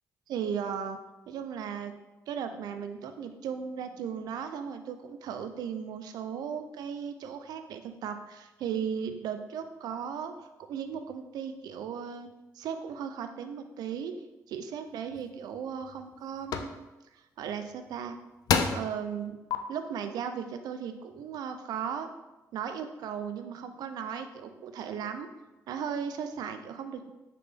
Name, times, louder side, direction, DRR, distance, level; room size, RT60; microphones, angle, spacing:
voice 1, 0.3-1.0 1.3-1.9 2.3-14.2 14.5-16.7 17.1-18.2 18.7-19.4 19.7-22.1 22.5-25.3 25.7-27.1, right 7 dB, 80° right, 8 dB, 0.4 m, -36 dB
sound 1, 15.1-15.2 15.8-16.1 16.5-16.7 17.9-18.0 18.5-18.9 19.5-19.6, left 6 dB, 70° left, 0.4 m, -27 dB
3.7 x 3.3 x 3.6 m, 1.1 s
cardioid pair, 90°, 7 cm